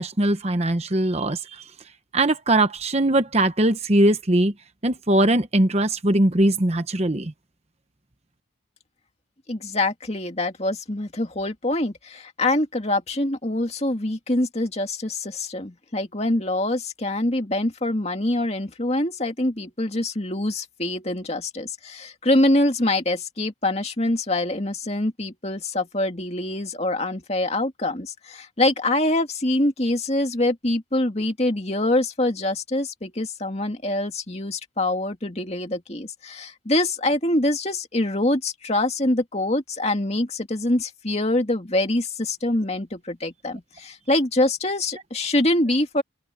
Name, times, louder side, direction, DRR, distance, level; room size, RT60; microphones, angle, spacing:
voice 1, 0.0-1.6 2.1-4.5 4.8-7.3, right 1 dB, 30° right, 1.0 m, -21 dB
voice 2, 9.5-46.0, left 1 dB, 30° left, 2.3 m, -24 dB
open air
head